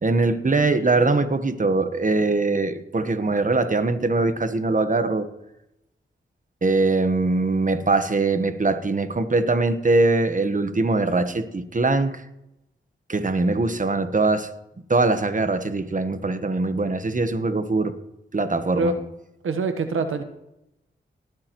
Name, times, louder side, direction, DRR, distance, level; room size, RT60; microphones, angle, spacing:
voice 1, 0.0-5.3 6.6-12.2 13.1-14.5 14.9-17.9 18.3-19.0, right 3 dB, 40° right, 10 dB, 1.3 m, -22 dB
voice 2, 19.4-20.2, right 3 dB, 90° right, 8 dB, 1.2 m, -24 dB
19.0 x 9.6 x 3.1 m, 0.85 s
cardioid pair, 45°, 21 cm